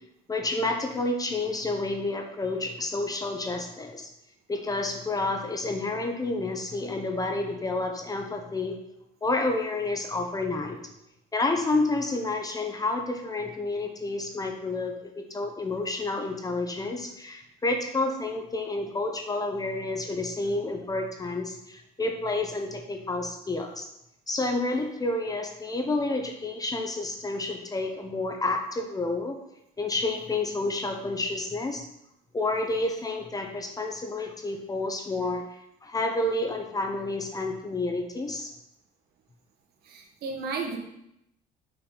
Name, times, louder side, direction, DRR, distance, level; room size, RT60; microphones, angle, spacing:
voice 1, 0.3-4.1 4.5-8.8 9.2-10.8 11.3-23.9 24.3-29.4 29.8-31.9 32.3-38.5, left 2 dB, 20° left, 3 dB, 0.8 m, -30 dB
voice 2, 39.8-40.8, right 4 dB, 70° right, 2 dB, 1.3 m, -33 dB
6.0 x 4.0 x 5.0 m, 0.81 s
cardioid pair, 110°, 17 cm